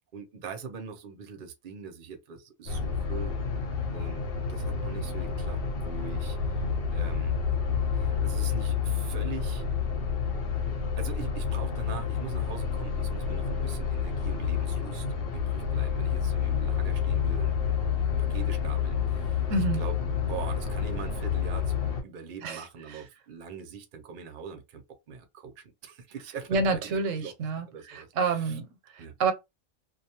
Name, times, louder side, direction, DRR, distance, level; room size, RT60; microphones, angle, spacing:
voice 1, 0.1-3.4 3.9-7.4 8.0-9.6 11.0-15.1 15.3-17.9 18.2-19.4 19.7-20.0 20.2-27.0 27.2-27.3 27.7-28.5 29.0-29.1, right 6 dB, 50° right, 0.7 m, -42 dB
sound 1, 2.7-22.0, left 6 dB, 60° left, 0.7 m, -29 dB
voice 2, 19.5-19.8 22.4-23.0 26.5-29.3, right 4 dB, 90° right, 1.0 m, -29 dB
2.4 x 2.2 x 2.7 m
omnidirectional pair, 1.3 m